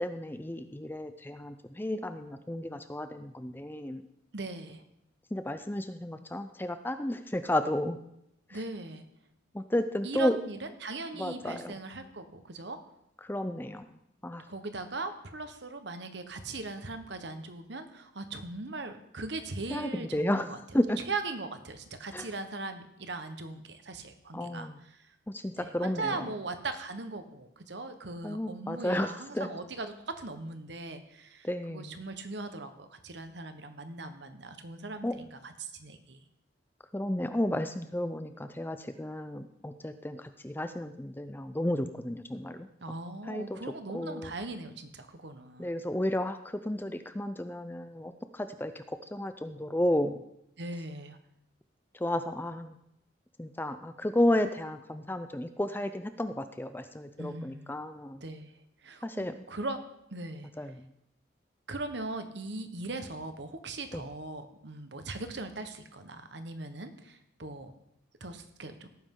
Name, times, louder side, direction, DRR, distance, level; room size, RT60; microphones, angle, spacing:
voice 1, 0.0-4.0 5.3-8.0 9.5-10.3 11.2-11.7 13.3-13.9 14.2-14.4 19.7-20.5 20.7-21.0 22.1-22.3 24.3-24.7 25.3-26.2 28.2-29.5 31.4-32.0 35.0-35.1 36.9-42.7 43.3-43.6 43.9-44.3 45.6-48.8 49.1-50.1 52.0-52.7 53.4-58.2 59.0-59.3 60.6-60.7 63.9-64.0, left 1 dB, 10° left, 9 dB, 0.5 m, -32 dB
voice 2, 4.3-4.8 8.5-9.0 10.0-12.8 14.5-20.6 21.0-25.0 25.6-36.2 42.8-45.7 50.6-51.2 57.2-57.8 58.2-58.5 58.8-59.8 60.1-60.7 61.7-67.7 68.2-68.9, right 3 dB, 60° right, 8 dB, 1.2 m, -39 dB
17.0 x 9.4 x 3.8 m, 0.80 s
head